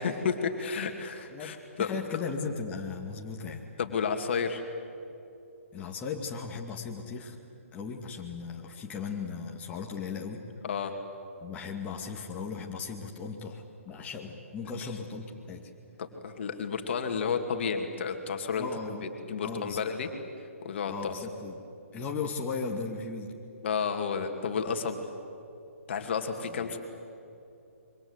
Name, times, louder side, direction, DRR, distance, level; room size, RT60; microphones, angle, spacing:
voice 1, 0.0-2.0 3.8-4.6 10.6-10.9 16.0-18.7 19.3-20.1 20.6-21.1 23.6-25.0 25.9-26.8, left 6 dB, 50° left, 5 dB, 2.5 m, -31 dB
voice 2, 1.3-3.7 5.7-7.4 7.7-10.4 11.4-15.7 18.6-19.1 19.4-19.9 20.9-21.6 21.9-23.3 26.5-26.8, left 5 dB, 15° left, 0 dB, 2.3 m, -37 dB
27.0 x 24.0 x 8.2 m, 2.7 s
figure-of-eight pair, 135°, 8 cm